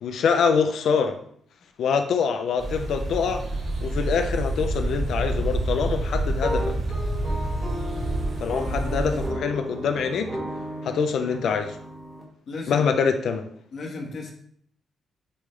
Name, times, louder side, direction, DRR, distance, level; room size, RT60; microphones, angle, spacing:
voice 1, 0.0-1.2 1.8-3.4 3.8-6.7 8.4-10.3 10.8-11.8 12.7-13.4, left 6 dB, 65° left, 7 dB, 0.5 m, -24 dB
sound 1, 2.6-9.3, right 1 dB, 50° right, 2.3 m, -28 dB
sound 2, 6.3-12.2, equal, 10° right, 1.6 m, -34 dB
voice 2, 12.5-12.9 13.7-14.3, left 3 dB, 50° left, 1 dB, 1.2 m, -34 dB
8.4 x 3.7 x 3.2 m, 0.65 s
wide cardioid pair, 160°, 0 cm